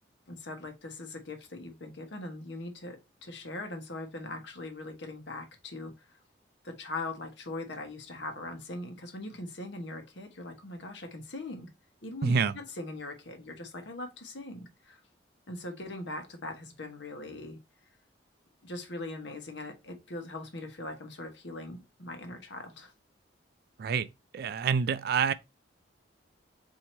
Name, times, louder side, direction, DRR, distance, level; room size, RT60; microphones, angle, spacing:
voice 1, 0.3-6.2 6.6-11.7 12.0-15.0 15.5-17.6 18.6-22.9, left 2 dB, 70° left, 1.0 m, -41 dB
voice 2, 12.2-12.5 23.8-24.1 24.3-25.3, right 6 dB, 55° right, 0.3 m, -27 dB
4.4 x 2.8 x 4.2 m
head